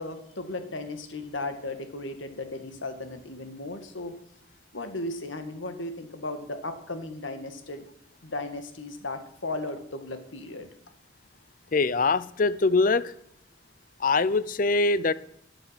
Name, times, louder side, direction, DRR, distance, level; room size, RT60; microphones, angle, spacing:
voice 1, 0.0-4.1 4.7-7.8 8.2-10.7, left 2 dB, 80° left, 1.8 m, -36 dB
voice 2, 11.7-13.1 14.0-15.1, left 3 dB, 45° left, 0.5 m, -23 dB
14.0 x 9.1 x 5.8 m
head